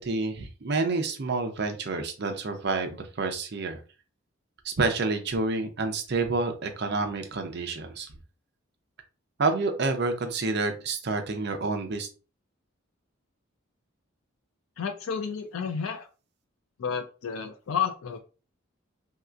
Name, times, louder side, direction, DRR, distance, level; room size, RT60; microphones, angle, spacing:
voice 1, 0.0-3.8 4.6-8.1 9.4-12.1, right 3 dB, 55° right, 5 dB, 0.6 m, -28 dB
voice 2, 14.8-16.1 16.8-18.2, left 7 dB, 80° left, 6 dB, 0.4 m, -31 dB
3.2 x 2.7 x 2.4 m, 0.34 s
head